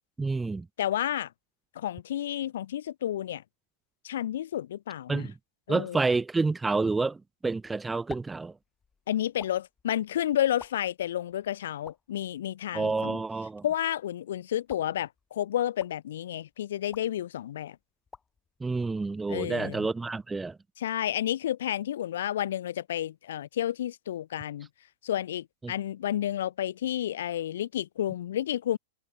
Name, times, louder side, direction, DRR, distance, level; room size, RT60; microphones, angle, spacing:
voice 1, 0.2-0.7 5.1-5.3 5.7-8.5 12.7-13.6 18.6-20.6 25.6-25.7, right 3 dB, 10° right, 0.4 m, -29 dB
voice 2, 0.8-1.3 1.7-3.4 4.0-5.3 5.7-6.0 9.1-13.2 13.6-17.8 19.3-19.9 20.8-24.7 25.0-28.8, left 11 dB, 70° left, 1.2 m, -31 dB
sound 1, 7.4-19.6, left 5 dB, 15° left, 2.5 m, -53 dB
hypercardioid pair, 110°, 0 cm